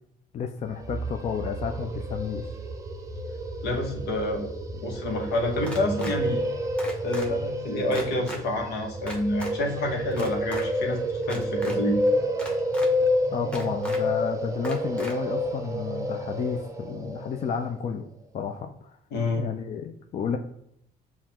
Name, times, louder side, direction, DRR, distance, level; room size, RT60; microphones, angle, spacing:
voice 1, 0.3-2.5 13.3-18.1 18.3-18.9 19.4-20.4, left 6 dB, 40° left, 5 dB, 0.4 m, -31 dB
sound 1, 0.7-17.7, equal, 20° right, 0.5 m, -29 dB
voice 2, 3.6-6.4 7.0-11.0 11.3-12.0 19.1-19.4, left 2 dB, 80° left, 2 dB, 1.1 m, -28 dB
sound 2, 5.6-6.1 6.8-7.3 7.9-8.4 9.1-9.5 10.1-10.6 11.2-11.8 12.4-12.9 13.5-14.0 14.6-15.1, equal, 5° left, 0.9 m, -38 dB
7.2 x 2.4 x 2.9 m, 0.75 s
cardioid pair, 110°, 17 cm